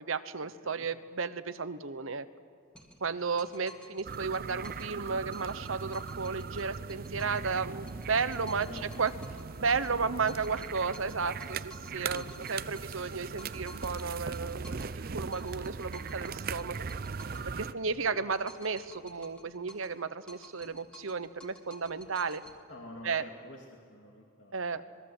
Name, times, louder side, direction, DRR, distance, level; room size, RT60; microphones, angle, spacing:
voice 1, 0.0-2.3 3.0-8.7 9.0-9.1 9.6-12.2 12.5-14.9 15.1-16.8 17.7-22.4 23.0-23.2 24.5-24.8, right 5 dB, 85° right, 12 dB, 1.0 m, -33 dB
sound 1, 2.7-5.0 5.3-7.5 7.9-10.0 10.3-15.0 15.3-17.5 17.9-20.0 20.3-22.6, left 1 dB, 5° left, 2.3 m, -54 dB
sound 2, 4.0-17.7, right 5 dB, 45° right, 0.5 m, -39 dB
voice 2, 8.3-9.0 11.8-12.3 17.3-17.9 22.7-24.9, left 1 dB, 65° left, 0 dB, 2.5 m, -49 dB
26.5 x 20.5 x 8.0 m, 2.4 s
head